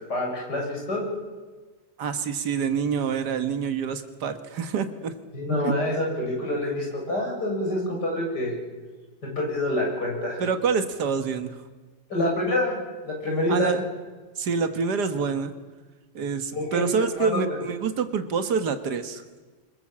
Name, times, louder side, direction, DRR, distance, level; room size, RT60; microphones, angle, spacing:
voice 1, 0.1-1.0 5.3-8.5 9.2-10.4 12.1-12.8 13.0-13.8 16.5-16.8 17.2-17.4, left 1 dB, 80° left, -1 dB, 8.0 m, -26 dB
voice 2, 2.0-5.1 5.6-5.7 10.4-11.6 13.5-13.9 14.4-15.5 16.2-19.2, right 6 dB, 75° right, 8 dB, 2.0 m, -26 dB
25.5 x 22.5 x 7.5 m, 1.3 s
omnidirectional pair, 1.8 m